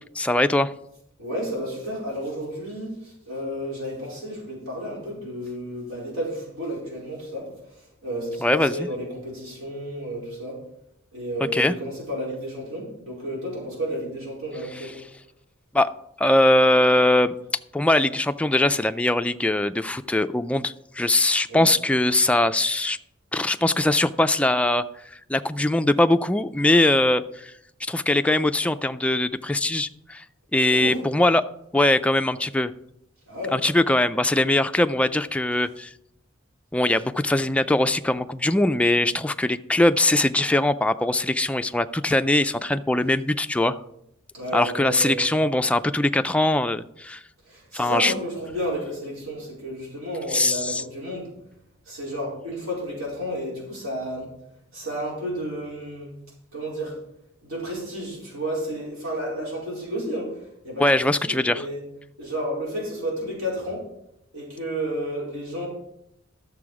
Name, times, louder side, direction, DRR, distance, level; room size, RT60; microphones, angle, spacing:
voice 1, 0.2-0.7 8.4-8.9 11.5-11.7 15.7-15.9 16.2-17.3 17.7-23.0 23.3-24.8 25.3-27.5 27.9-30.2 30.5-31.4 31.7-32.7 33.5-35.9 36.7-43.8 44.5-47.2 47.7-48.1 50.3-50.8 60.8-61.7, left 1 dB, 5° left, 9 dB, 0.3 m, -21 dB
voice 2, 1.2-10.6 11.1-14.9 21.5-21.7 30.7-31.0 33.3-33.6 44.3-45.3 47.5-51.3 51.9-54.3 54.7-56.1 56.5-56.9 57.4-60.3 60.6-61.8 62.2-63.8 64.3-65.7, equal, 80° right, -3 dB, 4.4 m, -32 dB
12.0 x 6.9 x 4.8 m, 0.79 s
head